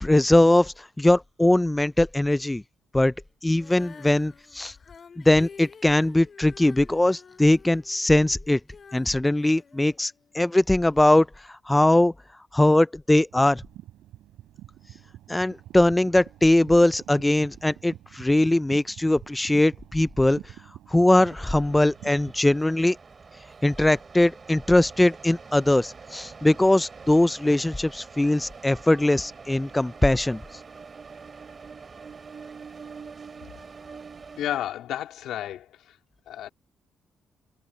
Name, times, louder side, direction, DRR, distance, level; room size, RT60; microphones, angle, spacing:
voice 1, 0.0-2.6 2.9-3.1 3.4-4.7 5.2-8.6 8.9-12.1 12.5-13.6 15.3-20.4 20.9-23.0 23.6-30.4, left 1 dB, 10° left, 0.4 m, -21 dB
Female singing, 3.5-10.6 11.2-11.3, left 6 dB, 45° left, 2.8 m, -49 dB
sound 1, 13.3-22.4, right 13 dB, 85° right, 4.9 m, -47 dB
sound 2, 21.2-34.6, right 5 dB, 35° right, 4.6 m, -45 dB
voice 2, 34.4-35.7 36.3-36.5, left 11 dB, 80° left, 2.9 m, -31 dB
cardioid pair, 90°, 0 cm